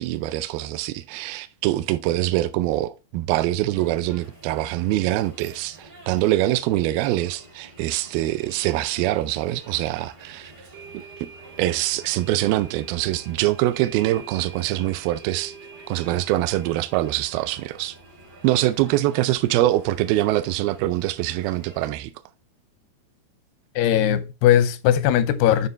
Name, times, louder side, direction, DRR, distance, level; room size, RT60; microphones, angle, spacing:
voice 1, 0.0-10.5 10.9-11.0 11.6-15.5 15.9-18.0 18.4-22.1, right 15 dB, 80° right, 2.2 m, -24 dB
sound 1, 3.7-21.9, right 1 dB, 30° right, 0.9 m, -49 dB
sound 2, 9.7-9.8 10.7-20.8, right 6 dB, 65° right, 2.7 m, -47 dB
voice 2, 23.8-25.7, left 10 dB, 90° left, 2.7 m, -19 dB
9.7 x 5.3 x 3.2 m
omnidirectional pair, 4.5 m